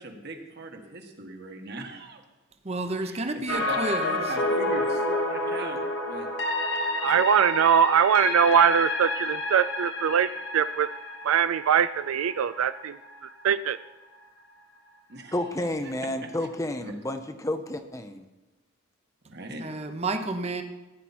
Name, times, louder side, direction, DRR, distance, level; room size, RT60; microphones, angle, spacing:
voice 1, 0.0-2.2 3.0-6.3 15.1-15.4 15.8-16.3 16.8-17.1 19.2-19.6, right 2 dB, 50° right, 4 dB, 1.5 m, -40 dB
voice 2, 2.6-4.2 19.6-20.6, right 2 dB, 30° right, 7 dB, 0.9 m, -30 dB
sound 1, 3.5-13.5 13.8-13.9, left 2 dB, 60° left, 1.2 m, -30 dB
voice 3, 7.0-10.9 11.2-13.0 13.4-13.8, right 8 dB, 80° right, 13 dB, 0.3 m, -22 dB
voice 4, 15.3-18.3, left 1 dB, 15° left, 8 dB, 0.6 m, -31 dB
15.5 x 9.7 x 4.3 m, 1.1 s
head